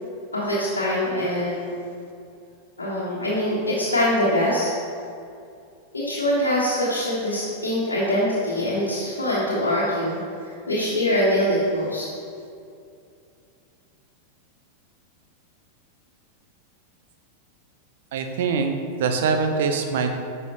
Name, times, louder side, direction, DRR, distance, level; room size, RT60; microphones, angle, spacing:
voice 1, 0.3-1.8 2.8-4.7 5.9-10.2 10.7-12.0, left 1 dB, 75° left, -8 dB, 1.4 m, -23 dB
voice 2, 18.1-18.7 19.0-20.2, right 5 dB, 55° right, 5 dB, 0.7 m, -23 dB
10.5 x 5.6 x 3.1 m, 2.4 s
figure-of-eight pair, 90°, 0 cm